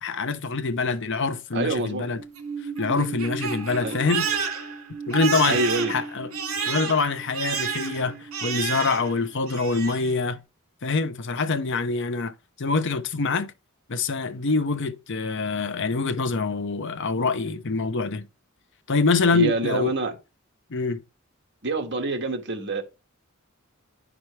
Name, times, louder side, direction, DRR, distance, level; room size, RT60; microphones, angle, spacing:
voice 1, 0.0-2.2 2.8-4.3 5.1-5.6 5.9-6.3 6.7-10.4 10.8-13.5 13.9-18.3 18.9-19.9 20.7-21.0, left 4 dB, 60° left, 0.8 m, -25 dB
voice 2, 1.5-2.1 3.8-4.0 5.4-6.0 19.3-20.1 21.6-22.8, right 2 dB, 55° right, 1.7 m, -26 dB
Crying sobbing, 2.2-9.2 9.5-10.1, right 6 dB, 75° right, 2.5 m, -30 dB
11.0 x 6.0 x 3.3 m
head